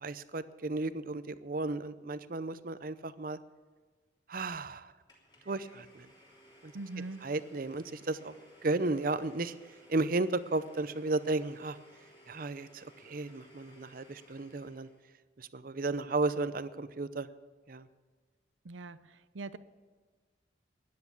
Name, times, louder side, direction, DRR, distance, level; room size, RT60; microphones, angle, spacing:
voice 1, 0.0-3.4 4.3-4.9 5.5-6.1 6.6-6.7 7.2-8.3 8.6-9.5 9.9-11.8 12.3-14.9 15.4-17.3 17.7-17.9, right 2 dB, 50° right, 14 dB, 0.6 m, -34 dB
Domestic sounds home sounds, 5.1-15.1, left 1 dB, 25° left, 3.2 m, -59 dB
voice 2, 6.7-7.3 18.6-19.6, right 3 dB, 90° right, 14 dB, 0.7 m, -42 dB
13.0 x 10.5 x 7.1 m, 1.4 s
head